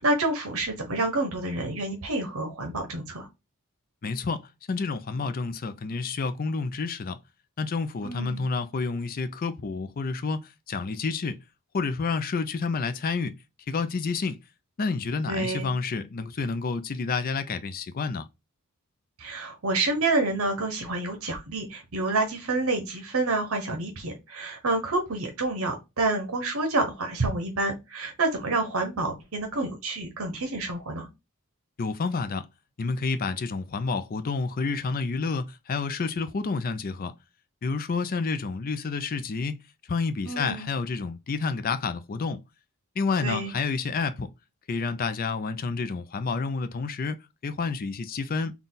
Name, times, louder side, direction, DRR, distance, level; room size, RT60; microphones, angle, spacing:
voice 1, 0.0-3.3 8.0-8.4 15.3-15.7 19.2-31.1 40.3-40.7 43.2-43.5, right 2 dB, 65° right, 0.9 m, -28 dB
voice 2, 4.0-7.2 7.6-11.4 11.7-13.4 13.7-14.4 14.8-18.3 31.8-32.5 32.8-37.1 37.6-39.6 39.9-42.4 43.0-44.3 44.7-48.5, left 4 dB, 40° left, 0.4 m, -29 dB
4.0 x 2.3 x 3.7 m
head